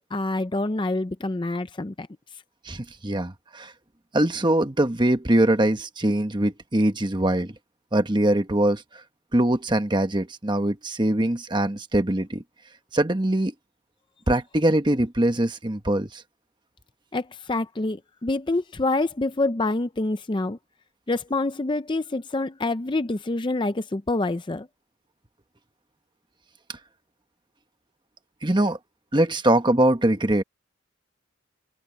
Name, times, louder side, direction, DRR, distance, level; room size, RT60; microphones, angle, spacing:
voice 1, 0.1-2.1 17.1-20.6 21.1-24.7, left 2 dB, 25° left, 0.5 m, -26 dB
voice 2, 2.6-3.7 4.1-7.6 7.9-9.0 9.3-12.4 12.9-13.5 14.3-16.2 26.7-26.8 28.4-28.8 29.1-30.4, right 1 dB, 20° right, 1.2 m, -22 dB
head